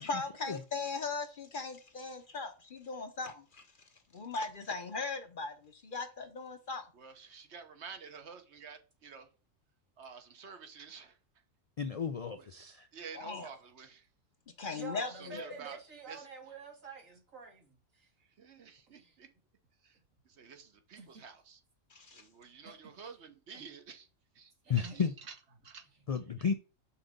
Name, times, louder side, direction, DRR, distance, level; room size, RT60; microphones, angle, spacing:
voice 1, 0.0-3.6 4.1-6.9 13.1-13.5 14.6-15.4 21.9-22.3, left 4 dB, 45° left, 0.9 m, -39 dB
voice 2, 6.9-9.3 10.0-11.2 12.4-12.5 12.9-14.1 14.6-15.8 16.1-16.3 18.4-19.3 19.8-20.0 20.3-21.6 22.1-24.1 24.3-25.3 25.6-25.9, right 6 dB, 60° right, 1.2 m, -50 dB
voice 3, 11.8-12.9 24.7-25.1 26.1-26.5, left 6 dB, 65° left, 0.3 m, -32 dB
voice 4, 14.7-18.1 18.9-19.2 20.9-21.2 22.6-22.9 23.5-23.7 24.6-25.0, right 4 dB, 90° right, 2.6 m, -49 dB
5.8 x 4.0 x 5.1 m
omnidirectional pair, 1.3 m